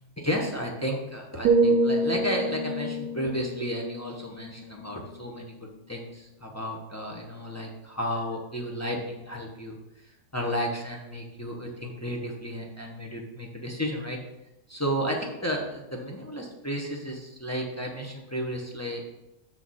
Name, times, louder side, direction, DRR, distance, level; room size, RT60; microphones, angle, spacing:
voice 1, 0.2-9.8 10.3-14.2 14.7-19.1, equal, 15° left, 0 dB, 0.6 m, -32 dB
sound 1, 1.4-5.4 5.8-6.1, right 2 dB, 90° right, 1.1 m, -27 dB
6.6 x 6.2 x 4.2 m, 0.94 s
omnidirectional pair, 1.7 m